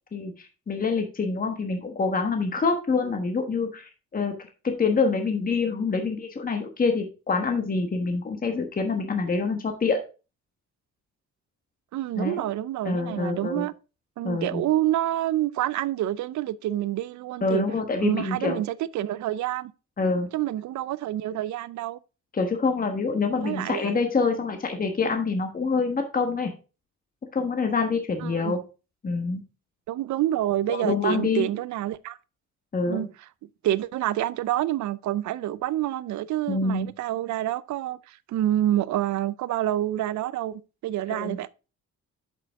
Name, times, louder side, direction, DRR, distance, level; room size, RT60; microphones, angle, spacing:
voice 1, 0.1-4.3 4.6-10.0 12.2-12.4 12.8-13.7 14.2-14.7 17.4-18.6 20.0-20.3 22.3-26.5 27.3-28.6 29.0-29.4 30.7-31.5 32.7-33.1 36.5-36.9 41.1-41.4, left 4 dB, 30° left, 1.3 m, -26 dB
voice 2, 11.9-13.7 14.2-17.6 18.0-19.7 20.3-22.0 23.4-24.0 28.2-28.6 29.9-32.2 32.9-33.1 33.6-41.5, right 13 dB, 70° right, 0.5 m, -27 dB
7.5 x 5.6 x 3.6 m
cardioid pair, 90°, 30 cm